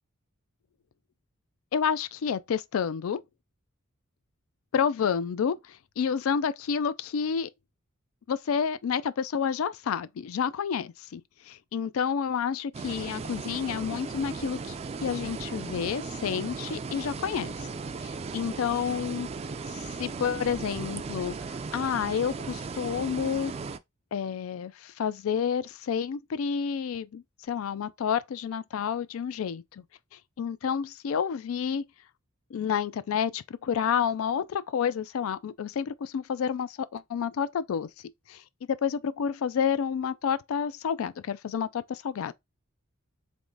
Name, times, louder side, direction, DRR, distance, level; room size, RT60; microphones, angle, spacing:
voice 1, 1.7-3.2 4.7-7.5 8.3-11.2 11.5-14.8 15.0-17.7 18.0-19.3 19.7-23.5 24.1-29.8 30.4-31.8 32.5-37.9 38.3-38.4 38.7-42.3, left 7 dB, 75° left, 0.4 m, -29 dB
sound 1, 12.7-23.8, right 4 dB, 30° right, 0.3 m, -37 dB
3.6 x 3.0 x 3.8 m
head